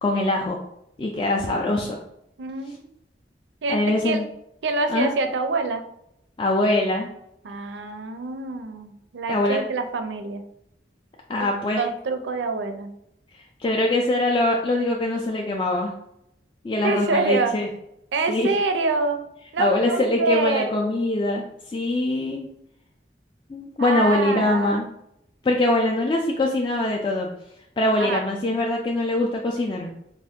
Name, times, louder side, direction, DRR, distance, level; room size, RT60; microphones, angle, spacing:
voice 1, 0.0-0.6 1.0-2.0 3.7-4.2 4.9-5.1 6.4-7.1 9.3-9.6 11.3-11.8 13.3-15.9 16.6-17.7 18.3-18.5 19.6-22.5 23.5-24.9 25.4-27.3 27.8-29.9, left 1 dB, 25° left, -1 dB, 0.3 m, -23 dB
voice 2, 2.4-2.9 3.6-4.2 4.6-5.8 7.4-10.4 11.4-11.5 11.8-12.9 16.8-17.5 18.1-19.3 19.5-20.7 23.8-24.8 28.0-28.2, right 3 dB, 85° right, 7 dB, 0.5 m, -26 dB
3.4 x 2.4 x 3.5 m, 0.79 s
head